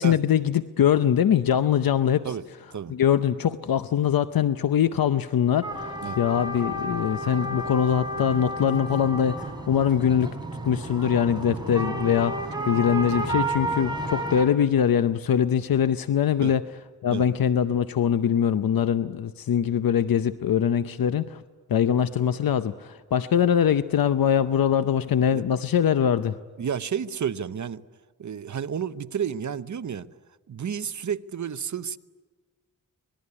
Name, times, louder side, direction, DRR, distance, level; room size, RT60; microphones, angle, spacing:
voice 1, 0.0-2.3 2.9-10.3 10.6-12.4 12.7-16.7 17.0-21.4 21.7-26.4, left 9 dB, 80° left, 0.7 m, -23 dB
sound 1, 5.6-14.5, right 1 dB, 10° right, 4.3 m, -31 dB
voice 2, 26.6-27.8 28.2-30.1 30.5-32.0, right 8 dB, 55° right, 0.8 m, -31 dB
25.5 x 20.5 x 9.8 m
wide cardioid pair, 115°, 34 cm